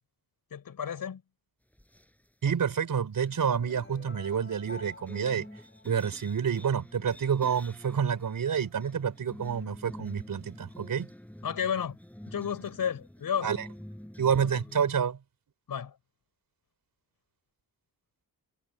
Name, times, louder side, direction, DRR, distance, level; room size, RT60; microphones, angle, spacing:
voice 1, 0.5-1.2 11.4-12.0 12.3-13.5 14.4-14.5 15.7-16.0, left 8 dB, 70° left, 6.6 m, -32 dB
sound 1, 1.7-2.3 3.3-14.9, equal, 5° left, 7.7 m, -48 dB
voice 2, 2.4-5.5 5.8-11.1 13.4-13.6 14.2-15.2, right 7 dB, 65° right, 4.2 m, -28 dB
sound 2, 3.6-6.7, left 3 dB, 35° left, 7.2 m, -50 dB
cardioid pair, 90°, 36 cm